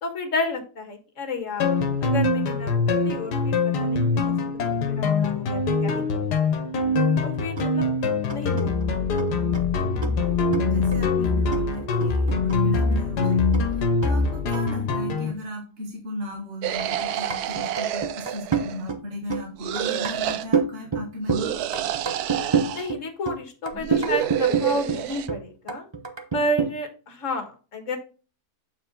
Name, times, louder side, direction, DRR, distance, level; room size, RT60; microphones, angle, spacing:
voice 1, 0.0-1.7 2.0-4.3 4.9-6.4 7.2-7.9 8.3-8.8 22.7-25.9 26.3-28.0, left 1 dB, 50° left, 5 dB, 1.9 m, -31 dB
sound 1, 1.6-15.3, left 4 dB, 85° left, 1.6 m, -23 dB
sound 2, 7.0-7.1 7.3-13.0 13.3-15.0 16.8-17.0 17.3-19.0 19.3-19.5 19.8-21.5 21.7-25.4 25.7-26.7, right 5 dB, 25° right, 0.7 m, -28 dB
voice 2, 10.7-21.5, left 1 dB, 45° right, -1 dB, 2.3 m, -36 dB
sound 3, 16.6-18.9 19.6-20.5 21.3-22.9 23.7-25.3, right 11 dB, 75° right, 1.1 m, -28 dB
8.3 x 4.8 x 3.8 m, 0.35 s
omnidirectional pair, 1.7 m